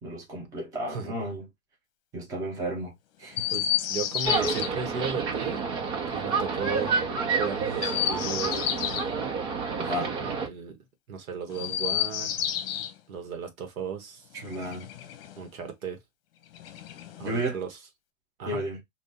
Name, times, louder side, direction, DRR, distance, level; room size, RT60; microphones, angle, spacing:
voice 1, 0.0-1.5 2.1-2.9 3.2-3.4 9.8-10.1 14.3-14.9 17.2-17.6 18.5-18.8, right 1 dB, 10° right, 0.6 m, -33 dB
Chirp tweet, 3.3-4.7 7.7-9.1 11.5-12.9 14.3-15.4 16.5-17.4, left 11 dB, 45° left, 0.8 m, -30 dB
voice 2, 3.5-5.7 6.1-7.0 7.3-8.6 10.3-10.8 11.1-12.3 13.1-14.2 15.4-16.0 17.2-17.8 18.4-18.6, right 6 dB, 85° right, 1.4 m, -35 dB
sound 1, 4.2-10.5, right 4 dB, 55° right, 1.2 m, -29 dB
2.8 x 2.6 x 3.6 m
supercardioid pair, 170°, 41 cm